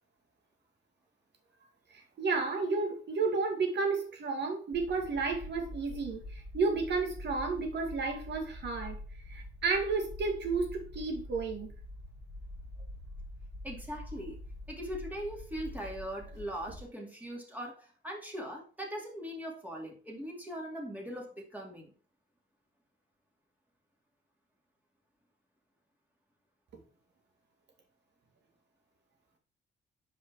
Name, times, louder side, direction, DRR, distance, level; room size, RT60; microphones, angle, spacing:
voice 1, 1.9-9.0 9.3-11.7, right 4 dB, 60° right, 2.2 m, -32 dB
sound 1, 4.7-16.8, left 1 dB, 15° left, 1.6 m, -46 dB
voice 2, 13.6-14.4 14.7-21.9, equal, 10° right, 2.5 m, -40 dB
5.5 x 5.0 x 4.7 m
cardioid pair, 90°, 20 cm